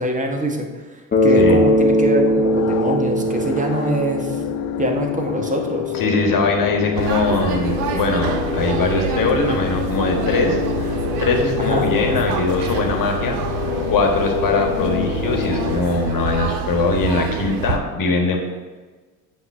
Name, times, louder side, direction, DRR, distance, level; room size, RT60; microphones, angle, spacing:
voice 1, 0.0-4.4 4.8-5.9 11.6-11.9, right 1 dB, 15° right, 2 dB, 1.1 m, -24 dB
Bass guitar, 1.1-5.1, equal, 20° left, 1.1 m, -19 dB
sound 1, 1.4-15.8, left 12 dB, 70° left, 0.5 m, -27 dB
voice 2, 5.9-13.4 13.9-18.4, left 3 dB, 40° left, 2 dB, 1.5 m, -21 dB
sound 2, 7.0-17.8, right 6 dB, 70° right, 0.8 m, -26 dB
8.2 x 2.8 x 5.9 m, 1.3 s
hypercardioid pair, 60°, 49 cm